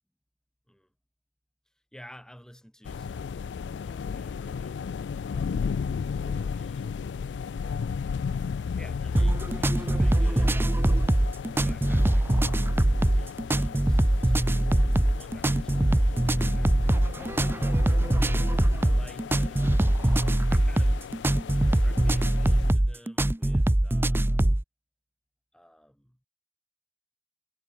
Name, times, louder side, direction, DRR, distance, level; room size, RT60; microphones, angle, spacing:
voice 1, 1.9-4.8 5.3-7.0 7.6-8.0 8.8-11.0 11.6-12.8 13.2-16.7 17.3-18.0 18.8-20.0 20.5-21.4 21.7-24.4 25.5-26.2, equal, 5° left, 5.4 m, -53 dB
sound 1, 2.8-22.7, left 6 dB, 85° left, 0.4 m, -35 dB
sound 2, 9.2-24.6, right 1 dB, 15° right, 0.5 m, -23 dB
head